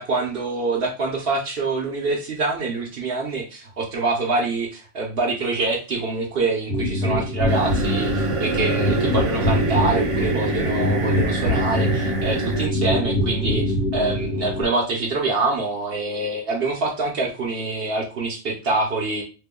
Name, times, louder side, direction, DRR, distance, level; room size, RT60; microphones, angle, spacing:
voice 1, 0.0-4.7 4.9-19.2, right 3 dB, 60° right, 0 dB, 0.8 m, -25 dB
sound 1, 6.7-14.6, left 1 dB, 70° left, 1.4 m, -23 dB
sound 2, 7.5-12.7, right 3 dB, 45° right, 0.4 m, -26 dB
3.0 x 2.1 x 3.5 m, 0.33 s
omnidirectional pair, 1.2 m